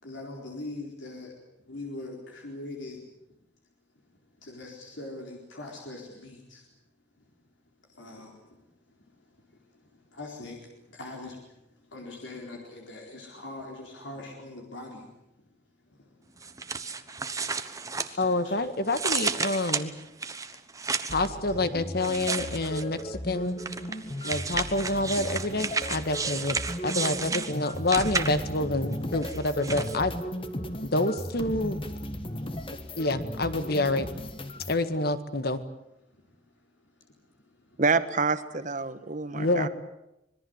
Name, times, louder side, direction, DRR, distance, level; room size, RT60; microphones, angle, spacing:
voice 1, 0.0-1.3 1.7-3.1 4.4-6.6 8.0-8.3 10.1-10.6 10.9-11.4 11.9-15.1 18.1-18.6, left 2 dB, 75° left, 0 dB, 4.4 m, -41 dB
sound 1, 16.4-18.5 18.9-21.3 22.0-23.0 23.6-28.6 29.2-30.0, right 4 dB, 20° right, 1.1 m, -32 dB
voice 2, 18.2-19.9 21.1-23.6 24.2-30.1 30.8-31.8 32.9-34.1 34.7-35.6 39.3-39.7, left 2 dB, 55° left, 11 dB, 1.7 m, -27 dB
sound 2, 21.1-34.8, equal, 30° left, 1.7 m, -36 dB
voice 3, 37.8-39.7, right 4 dB, 40° right, 11 dB, 1.3 m, -27 dB
25.5 x 21.5 x 8.1 m, 0.89 s
head